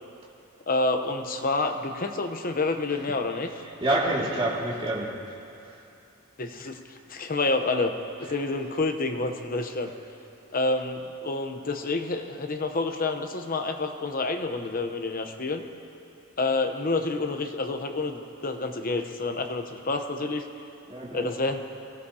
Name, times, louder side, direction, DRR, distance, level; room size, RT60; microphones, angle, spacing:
voice 1, 0.7-3.5 6.4-6.8 7.1-7.9 8.2-9.9 10.5-15.7 16.4-20.5 21.1-21.6, left 3 dB, 40° left, 6 dB, 0.9 m, -28 dB
voice 2, 3.6-5.1 8.3-8.4 20.9-21.3, right 1 dB, 25° right, -5 dB, 2.3 m, -28 dB
24.0 x 16.5 x 2.8 m, 2.7 s
head